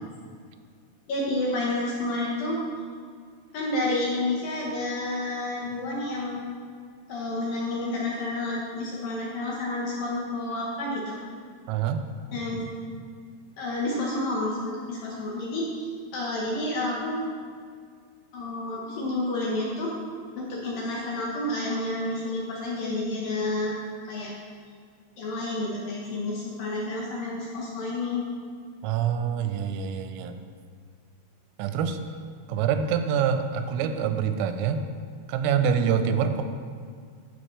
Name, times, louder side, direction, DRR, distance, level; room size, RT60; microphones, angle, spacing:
voice 1, 1.1-2.6 3.5-6.4 7.1-11.2 12.3-12.7 13.6-17.2 18.3-19.9 20.4-23.8 24.1-24.3 25.2-28.2, left 2 dB, 80° left, -3 dB, 2.0 m, -30 dB
voice 2, 11.7-12.1 28.8-30.4 31.6-32.0 32.5-34.8 35.3-36.4, right 7 dB, 90° right, 8 dB, 3.3 m, -25 dB
15.0 x 7.5 x 3.3 m, 2.1 s
omnidirectional pair, 5.9 m